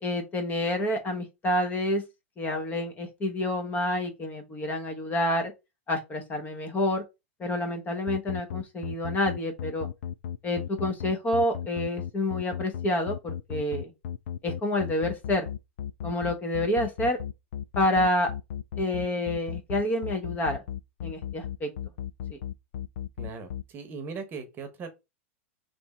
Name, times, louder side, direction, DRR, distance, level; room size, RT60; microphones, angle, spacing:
voice 1, 0.0-2.0 2.4-5.5 5.9-7.1 7.4-9.9 10.4-13.9 14.4-15.5 16.0-17.2 17.7-18.3 18.8-20.6 21.0-21.7 22.3-22.4, left 1 dB, 25° left, 1.0 m, -28 dB
sound 1, 8.1-23.6, left 9 dB, 70° left, 0.3 m, -34 dB
voice 2, 23.2-24.9, right 5 dB, 30° right, 1.0 m, -39 dB
3.4 x 3.1 x 4.3 m
hypercardioid pair, 130°, 7 cm